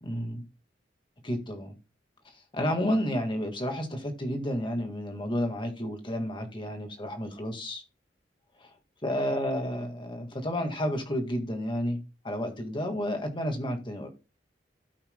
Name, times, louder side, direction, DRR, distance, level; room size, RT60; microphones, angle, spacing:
voice 1, 0.0-0.4 1.2-1.7 2.5-7.8 9.0-14.1, equal, 25° left, 1.7 m, -31 dB
16.5 x 5.7 x 2.2 m
head